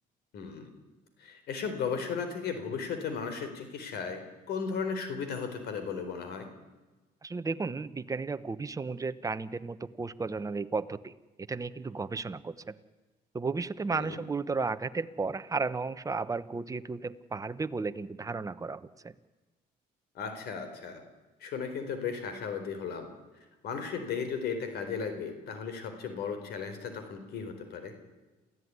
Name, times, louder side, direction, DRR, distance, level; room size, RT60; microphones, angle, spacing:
voice 1, 0.3-0.7 1.2-6.5 13.9-14.2 20.1-21.0 21.4-23.1 23.6-27.9, left 6 dB, 70° left, 8 dB, 4.3 m, -35 dB
voice 2, 7.2-11.1 11.5-12.8 13.3-19.1, right 4 dB, 20° right, 11 dB, 1.1 m, -34 dB
27.5 x 15.5 x 9.8 m, 1.2 s
cardioid pair, 110°, 17 cm